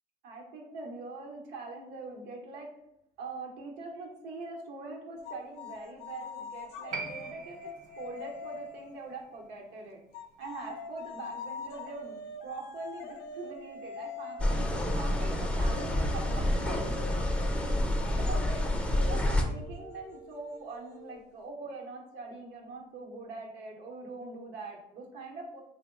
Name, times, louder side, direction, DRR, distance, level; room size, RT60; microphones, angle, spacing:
voice 1, 0.2-2.7 3.2-10.0 10.4-12.2 12.4-17.1 18.1-18.6 18.9-25.6, right 3 dB, 80° right, 0 dB, 0.8 m, -43 dB
sound 1, 5.2-9.2 10.1-21.4, left 4 dB, 80° left, 0.4 m, -44 dB
Piano, 6.9-13.9 14.1-14.2, right 4 dB, 50° right, 0.6 m, -46 dB
sound 2, 14.4-19.4, left 1 dB, 5° left, 0.4 m, -28 dB
2.9 x 2.1 x 3.6 m, 0.81 s
cardioid pair, 110°, 17 cm